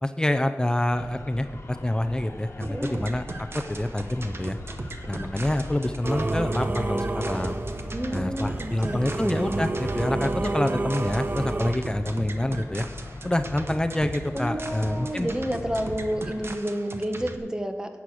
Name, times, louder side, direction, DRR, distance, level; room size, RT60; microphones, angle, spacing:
voice 1, 0.0-4.6 5.1-7.6 8.1-12.9 13.2-15.3, left 1 dB, 15° left, 8 dB, 0.6 m, -27 dB
sound 1, 0.9-16.6, left 2 dB, 75° left, 1.2 m, -40 dB
sound 2, 2.6-17.4, right 2 dB, 60° right, 0.9 m, -38 dB
voice 2, 2.7-3.1 7.9-9.1 14.3-17.9, equal, 15° right, 6 dB, 1.2 m, -30 dB
Singing / Musical instrument, 6.0-11.7, right 2 dB, 40° right, 0.5 m, -30 dB
11.0 x 8.5 x 6.2 m, 1.3 s
wide cardioid pair, 75°, 5 cm